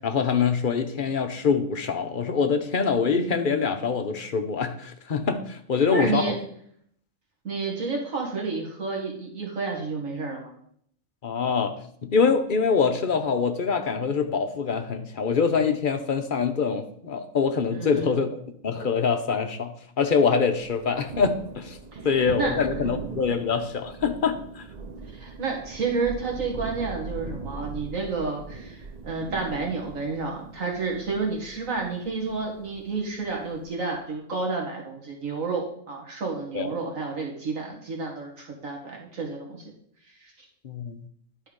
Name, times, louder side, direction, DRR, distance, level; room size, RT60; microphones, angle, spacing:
voice 1, 0.0-6.3 11.2-18.3 18.6-21.8 22.0-24.6 36.5-36.7 40.6-41.0, left 5 dB, 45° left, 6 dB, 0.8 m, -24 dB
voice 2, 5.9-6.4 7.4-10.5 17.7-18.2 21.9-22.0 22.4-22.5 25.1-39.7 40.2-40.3, right 4 dB, 75° right, -1 dB, 2.3 m, -30 dB
Thunder, 20.6-33.8, right 4 dB, 45° right, 0.6 m, -40 dB
10.5 x 4.5 x 5.2 m, 0.65 s
omnidirectional pair, 1.4 m